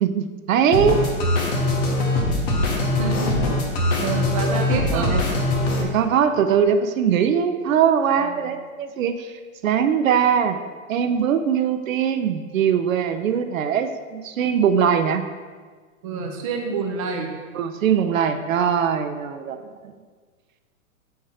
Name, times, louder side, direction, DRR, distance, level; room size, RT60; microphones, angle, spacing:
voice 1, 0.0-1.1 4.9-5.2 5.8-9.3 9.6-10.6 10.9-15.2 17.5-19.9, right 7 dB, 70° right, 8 dB, 0.6 m, -21 dB
sound 1, 0.7-5.8, left 1 dB, 30° left, 0.8 m, -22 dB
voice 2, 3.0-3.4 4.0-5.2 8.2-8.4 16.0-17.3, right 4 dB, 25° right, 1 dB, 0.5 m, -28 dB
4.9 x 4.6 x 5.5 m, 1.5 s
hypercardioid pair, 155°, 42 cm